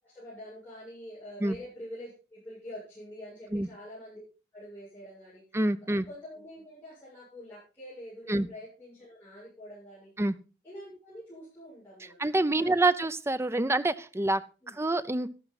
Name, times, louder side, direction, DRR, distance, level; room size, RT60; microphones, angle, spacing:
voice 1, 0.0-4.2 4.5-5.4 6.1-10.1 10.6-12.2 12.5-12.9 14.6-14.8, equal, 15° left, -10 dB, 7.1 m, -46 dB
voice 2, 5.5-6.1 8.3-8.5 10.2-10.3 12.0-14.4 14.7-15.3, right 2 dB, 15° right, 13 dB, 0.5 m, -27 dB
12.5 x 11.5 x 4.1 m, 0.33 s
head